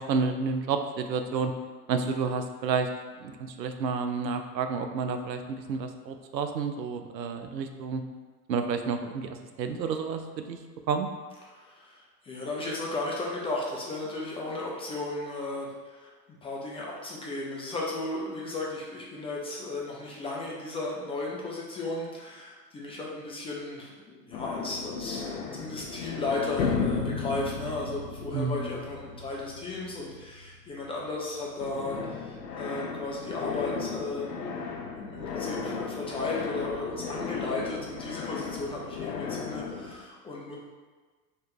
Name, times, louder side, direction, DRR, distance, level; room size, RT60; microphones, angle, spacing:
voice 1, 0.0-1.5 1.9-2.9 3.2-8.0 8.5-10.6 10.9-11.1 28.3-28.8, right 5 dB, 85° right, 7 dB, 0.5 m, -30 dB
voice 2, 11.5-16.1 16.4-40.6, left 2 dB, 15° left, -4 dB, 0.4 m, -35 dB
sound 1, 24.3-31.3 31.6-39.9, left 5 dB, 70° left, 0.8 m, -35 dB
3.2 x 2.9 x 4.4 m, 1.4 s
hypercardioid pair, 85°, 49 cm